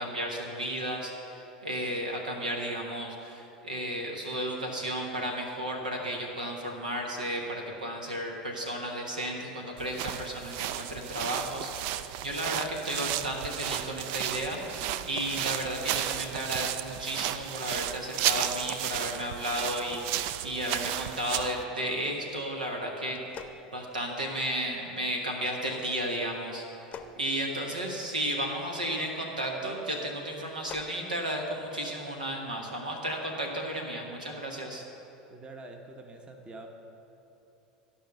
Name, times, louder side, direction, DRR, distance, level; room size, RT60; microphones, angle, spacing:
voice 1, 0.0-14.6 15.0-23.4 23.7-26.9 27.2-34.8, right 1 dB, 90° right, 1 dB, 1.3 m, -33 dB
sound 1, 9.8-21.6, right 12 dB, 55° right, 0.4 m, -33 dB
sound 2, 23.1-24.5 26.7-28.2 30.3-31.0, left 6 dB, 35° left, 0.7 m, -47 dB
voice 2, 35.3-36.7, right 2 dB, 25° right, 4 dB, 1.0 m, -45 dB
13.0 x 5.5 x 6.7 m, 3.0 s
hypercardioid pair, 80°, 4 cm